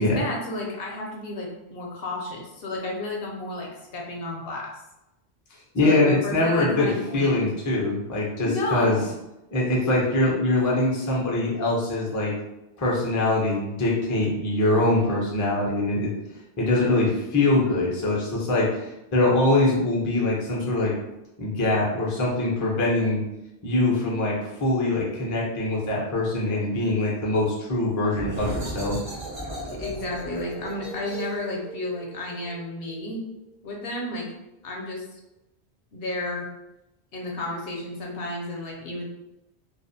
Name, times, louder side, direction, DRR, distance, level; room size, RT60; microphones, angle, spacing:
voice 1, 0.0-4.8 5.8-7.5 8.4-9.1 29.6-33.2 33.6-34.3 34.6-35.2 35.9-36.5 37.1-39.0, left 2 dB, 65° left, -1 dB, 0.8 m, -32 dB
voice 2, 5.7-9.0 9.5-12.3 12.8-16.1 16.6-20.9 21.4-23.2 23.6-29.0, left 2 dB, 30° left, -4 dB, 0.4 m, -23 dB
sound 1, 28.1-33.5, right 1 dB, 40° right, 0.4 m, -36 dB
2.4 x 2.0 x 2.6 m, 0.94 s
omnidirectional pair, 1.1 m